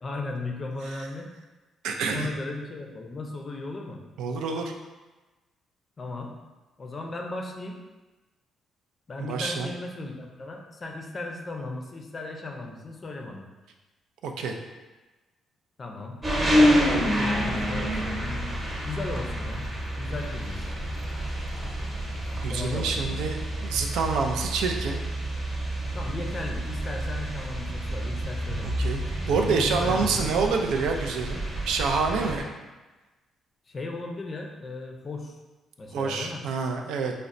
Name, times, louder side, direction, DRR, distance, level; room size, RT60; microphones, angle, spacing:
voice 1, 0.0-1.3 2.1-4.0 6.0-6.3 6.8-7.8 9.1-13.5 15.8-18.5 18.8-19.7 19.9-20.7 22.5-23.2 25.9-28.8 29.3-30.4 33.7-35.3 35.8-36.4, left 2 dB, 35° left, 2 dB, 0.5 m, -36 dB
voice 2, 1.8-2.3 4.2-4.7 9.2-9.7 14.2-14.5 22.4-25.0 28.6-29.0 29.3-32.5 35.9-37.1, right 4 dB, 85° right, 3 dB, 0.3 m, -27 dB
sound 1, 16.2-32.4, equal, 25° right, 0.9 m, -28 dB
4.0 x 2.1 x 2.5 m, 1.2 s
cardioid pair, 90°, 0 cm